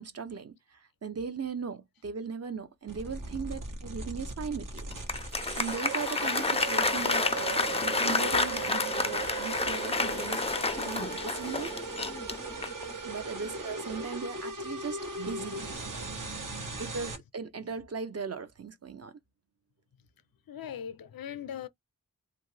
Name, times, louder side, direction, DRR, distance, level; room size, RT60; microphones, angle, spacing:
voice 1, 0.0-4.9 5.6-11.7 13.0-16.1 16.8-19.2, right 5 dB, 45° right, 0.6 m, -38 dB
sound 1, 2.9-17.2, right 3 dB, 65° right, 1.1 m, -38 dB
Applause, 4.8-12.9, left 3 dB, 20° left, 0.4 m, -30 dB
voice 2, 15.9-16.8 20.5-21.7, left 9 dB, 80° left, 0.5 m, -42 dB
2.8 x 2.4 x 3.1 m
wide cardioid pair, 70°, 34 cm